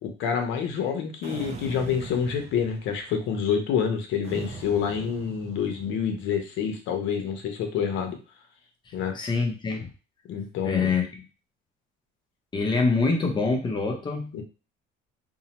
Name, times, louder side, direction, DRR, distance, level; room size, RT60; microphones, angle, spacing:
voice 1, 0.0-8.2 8.9-9.2 10.3-10.9 14.3-14.4, left 7 dB, 65° left, 5 dB, 0.7 m, -27 dB
sound 1, 1.2-3.1 4.2-6.0, right 4 dB, 30° right, 0.4 m, -40 dB
voice 2, 9.1-9.9 10.6-11.1 12.5-14.3, left 4 dB, 20° left, 2 dB, 0.6 m, -25 dB
2.7 x 2.0 x 2.8 m, 0.32 s
cardioid pair, 135°, 21 cm